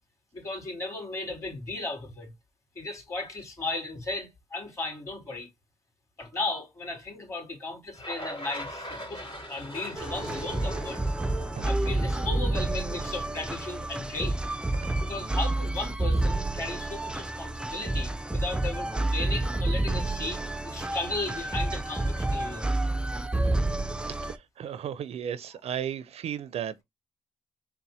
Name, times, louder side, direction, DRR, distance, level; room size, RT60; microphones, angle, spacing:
voice 1, 0.3-2.3 2.7-5.5 6.2-9.2 9.5-11.0 11.6-14.4 15.0-22.7, left 2 dB, 30° left, 2.6 m, -36 dB
sound 1, 8.0-13.3, equal, 45° left, 2.6 m, -40 dB
sound 2, 10.0-24.4, right 2 dB, 10° right, 0.4 m, -29 dB
voice 2, 24.2-26.8, right 9 dB, 70° right, 0.5 m, -35 dB
4.1 x 2.1 x 4.0 m
cardioid pair, 80°, 11 cm